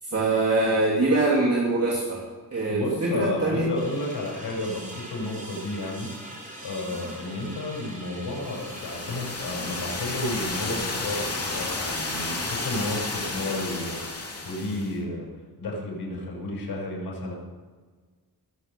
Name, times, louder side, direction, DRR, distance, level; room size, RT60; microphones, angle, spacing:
voice 1, 0.0-3.7, right 2 dB, 40° right, -5 dB, 3.1 m, -24 dB
voice 2, 2.7-6.1 6.6-15.3 15.6-17.4, left 1 dB, 90° left, -1 dB, 6.2 m, -32 dB
sound 1, 3.7-14.1, right 1 dB, 20° right, 4.8 m, -42 dB
sound 2, 8.4-14.9, left 3 dB, 35° left, 2.7 m, -32 dB
19.5 x 8.0 x 6.9 m, 1.4 s
wide cardioid pair, 110°, 39 cm